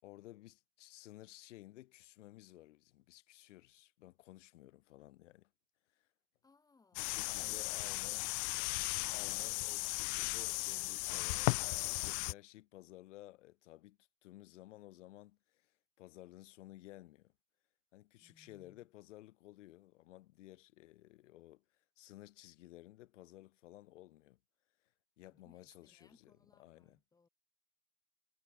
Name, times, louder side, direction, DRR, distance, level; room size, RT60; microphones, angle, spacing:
voice 1, 0.0-5.5 6.0-6.1 6.9-8.3 9.1-15.7 16.0-17.3 17.9-21.6 22.0-24.4 25.2-26.3 26.6-27.0, left 16 dB, 75° left, 7.7 m, -56 dB
voice 2, 6.4-7.7 18.2-18.9 25.3-27.3, left 4 dB, 10° left, 7.4 m, -68 dB
sound 1, 7.0-12.3, left 35 dB, 40° left, 0.5 m, -36 dB
supercardioid pair, 155°, 37 cm